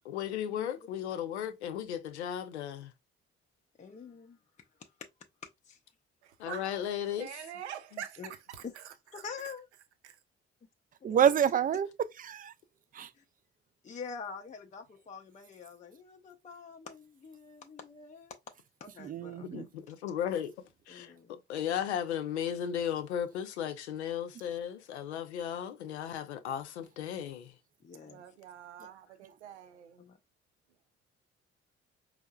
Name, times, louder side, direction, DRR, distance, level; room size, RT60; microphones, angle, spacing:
voice 1, 0.1-2.9 6.4-7.3 19.5-20.5 20.9-27.6, left 9 dB, 80° left, 0.5 m, -35 dB
voice 2, 3.8-4.4 4.8-5.1 5.7-5.8 8.2-8.3 8.6-8.7 9.1-9.7 11.1-11.2 13.1-13.2 13.8-18.4 18.8-19.7 20.9-21.4 27.8-28.2 28.8-28.9 30.0-30.2, left 5 dB, 20° left, 0.6 m, -46 dB
voice 3, 6.2-9.5 10.0-10.2 28.0-30.0, right 10 dB, 80° right, 0.5 m, -46 dB
voice 4, 11.0-11.9 12.2-12.5 12.9-13.1 19.0-19.7, right 9 dB, 25° right, 0.4 m, -27 dB
5.2 x 2.1 x 2.2 m
figure-of-eight pair, 40°, 33 cm